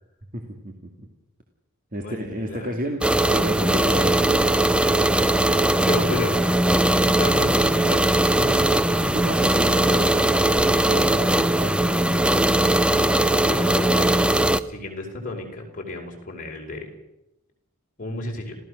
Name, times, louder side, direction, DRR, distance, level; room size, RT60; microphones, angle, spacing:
voice 1, 0.3-0.7 1.0-1.1 1.9-3.0 3.3-4.4 9.0-10.3 10.7-12.2, equal, 40° right, 3 dB, 2.1 m, -32 dB
voice 2, 2.0-2.7 5.8-6.6 7.0-8.7 12.9-14.1 14.7-16.9 18.0-18.6, left 2 dB, 40° left, 1 dB, 4.8 m, -32 dB
sound 1, 3.0-14.6, right 1 dB, 5° right, 0.6 m, -20 dB
27.0 x 16.0 x 6.4 m, 0.91 s
head